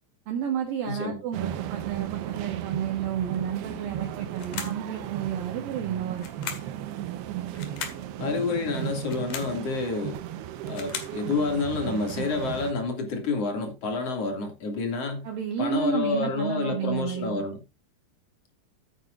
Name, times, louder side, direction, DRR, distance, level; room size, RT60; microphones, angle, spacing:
voice 1, 0.3-6.5 15.2-17.4, right 8 dB, 65° right, 2.9 m, -31 dB
voice 2, 0.9-1.2 8.2-10.2 10.7-15.3 15.6-17.6, left 3 dB, 40° left, 3.0 m, -29 dB
sound 1, 1.3-12.7, right 11 dB, 85° right, 3.0 m, -35 dB
sound 2, 4.4-4.9 6.2-6.8 7.5-8.1 9.0-9.6 10.5-11.2, left 7 dB, 65° left, 3.4 m, -37 dB
15.0 x 9.0 x 2.5 m
omnidirectional pair, 4.7 m